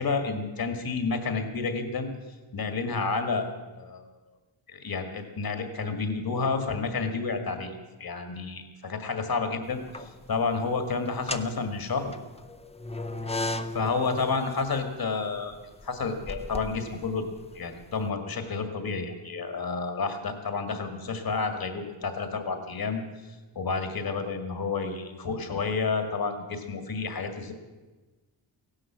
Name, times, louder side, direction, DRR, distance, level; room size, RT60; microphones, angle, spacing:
voice 1, 0.0-2.1 2.5-4.1 4.7-9.8 10.3-12.1 13.7-15.6 15.8-17.2 17.6-23.0 23.6-27.5, left 4 dB, 50° left, 7 dB, 1.9 m, -30 dB
sound 1, 9.7-10.4 11.1-17.9, left 2 dB, 15° left, 0.6 m, -37 dB
16.5 x 11.5 x 7.5 m, 1.2 s
wide cardioid pair, 175°, 47 cm